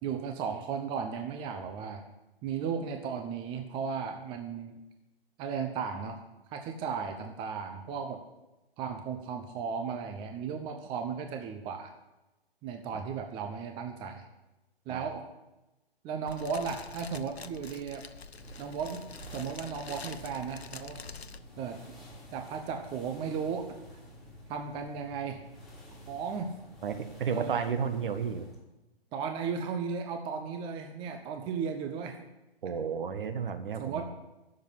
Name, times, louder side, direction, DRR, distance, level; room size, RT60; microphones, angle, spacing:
voice 1, 0.0-2.0 2.4-4.8 5.4-6.2 6.5-8.2 8.8-11.9 12.6-14.2 14.9-15.2 16.0-18.0 18.6-19.0 19.3-21.0 21.6-21.8 22.3-23.8 24.5-25.4 26.1-26.5 27.3-27.6 29.1-32.2 33.8-34.0, right 6 dB, 15° right, 5 dB, 0.9 m, -35 dB
Fire, 16.3-21.4, left 5 dB, 85° left, 1.0 m, -46 dB
sound 1, 18.3-28.6, equal, ahead, 3.6 m, -50 dB
voice 2, 26.8-28.5 32.6-34.0, right 6 dB, 55° right, 7 dB, 1.7 m, -32 dB
12.0 x 7.5 x 9.8 m, 0.99 s
hypercardioid pair, 140°, 31 cm